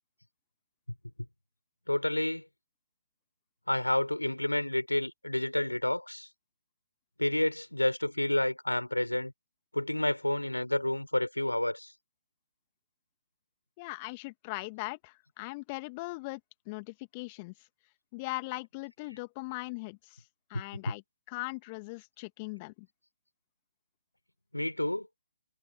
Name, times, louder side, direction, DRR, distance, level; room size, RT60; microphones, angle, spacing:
voice 1, 1.9-2.4 3.7-6.3 7.2-9.3 9.7-11.9 24.5-25.1, left 1 dB, 90° left, 4.0 m, -29 dB
voice 2, 13.8-16.4 16.7-17.5 18.1-20.2 20.5-21.0 21.3-22.9, left 26 dB, 25° left, 1.9 m, -39 dB
figure-of-eight pair, 135°, 0 cm